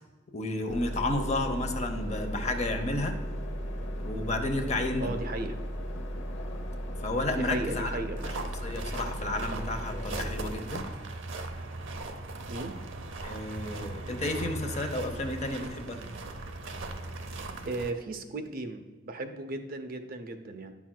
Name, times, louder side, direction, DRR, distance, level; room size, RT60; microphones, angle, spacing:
voice 1, 0.3-3.2 4.0-5.2 7.0-8.0 8.6-10.9 13.2-16.0, left 2 dB, 35° left, 6 dB, 0.6 m, -32 dB
sound 1, 0.7-10.5, equal, 85° left, 0.8 m, -36 dB
voice 2, 5.0-5.6 7.4-8.2 12.5-12.7 17.6-20.7, right 2 dB, 50° right, 7 dB, 0.6 m, -36 dB
sound 2, 8.2-17.9, right 2 dB, 85° right, 0.6 m, -39 dB
9.9 x 6.0 x 2.2 m, 1.3 s
head